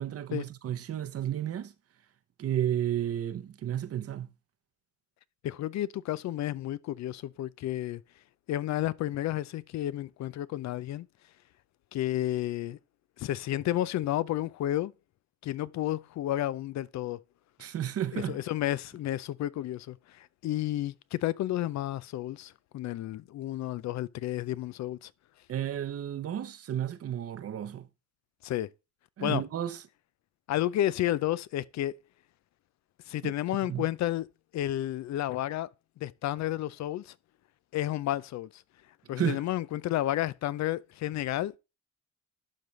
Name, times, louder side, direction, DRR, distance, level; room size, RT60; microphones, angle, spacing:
voice 1, 0.0-1.7 2.4-4.3 17.6-18.4 25.5-27.9 29.2-29.8 33.2-33.3 33.7-33.9 39.2-39.4, right 10 dB, 50° right, 0.7 m, -32 dB
voice 2, 5.4-8.0 8.5-11.1 11.9-12.8 13.2-14.9 15.4-17.2 18.1-25.1 28.4-28.7 29.2-29.4 30.5-31.9 33.1-34.3 34.5-35.7 36.0-37.1 37.7-38.6 39.1-41.5, left 13 dB, 65° left, 0.5 m, -31 dB
11.5 x 3.9 x 3.2 m
cardioid pair, 90°, 30 cm